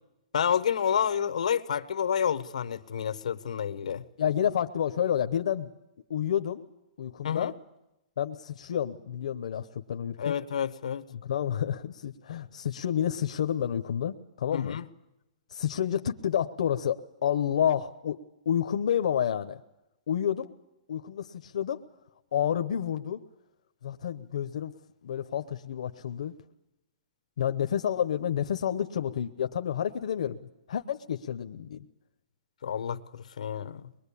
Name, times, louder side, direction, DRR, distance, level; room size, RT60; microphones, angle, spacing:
voice 1, 0.3-4.0 7.2-7.5 10.2-11.0 14.5-14.8 32.6-33.9, left 8 dB, 90° left, 1.1 m, -29 dB
voice 2, 4.2-5.7 6.1-6.6 7.0-7.5 8.2-10.3 11.1-14.8 15.5-19.6 20.1-20.5 20.9-21.8 22.3-23.2 23.8-24.7 25.0-26.3 27.4-30.4 30.7-31.9, left 9 dB, 65° left, 0.9 m, -29 dB
23.5 x 21.5 x 8.5 m
hypercardioid pair, 170°, 4 cm